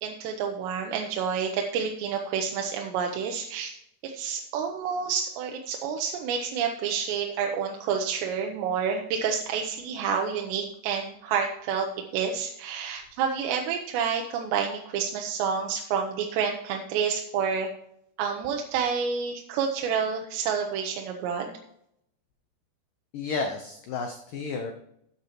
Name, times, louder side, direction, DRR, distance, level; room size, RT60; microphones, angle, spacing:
voice 1, 0.0-3.8 4.0-11.9 12.1-17.7 18.2-21.5, right 6 dB, 80° right, 2 dB, 2.9 m, -29 dB
voice 2, 23.1-24.7, left 4 dB, 90° left, 5 dB, 1.9 m, -32 dB
14.0 x 8.4 x 3.0 m, 0.75 s
omnidirectional pair, 5.2 m